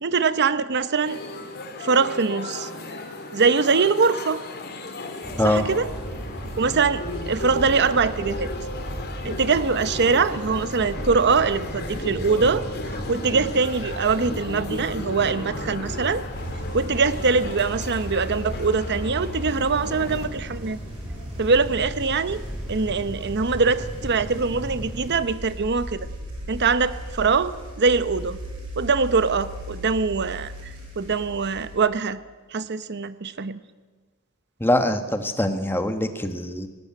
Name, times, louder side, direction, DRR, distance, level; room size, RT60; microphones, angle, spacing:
voice 1, 0.0-1.2 1.8-2.7 3.3-4.4 5.4-5.9 6.6-8.5 9.2-12.6 12.9-16.2 16.7-20.8 21.4-22.4 22.7-26.1 26.5-27.5 27.8-28.4 28.8-32.2 32.5-33.6, right 4 dB, 50° right, 14 dB, 0.8 m, -23 dB
sound 1, 1.0-20.3, left 2 dB, 45° left, 2.9 m, -36 dB
sound 2, 5.2-25.1, equal, 5° right, 7.7 m, -36 dB
sound 3, 16.3-31.8, equal, 65° right, 6.9 m, -37 dB
voice 2, 34.6-36.7, left 1 dB, 10° left, 7 dB, 1.4 m, -23 dB
18.5 x 18.5 x 8.6 m, 1.4 s
head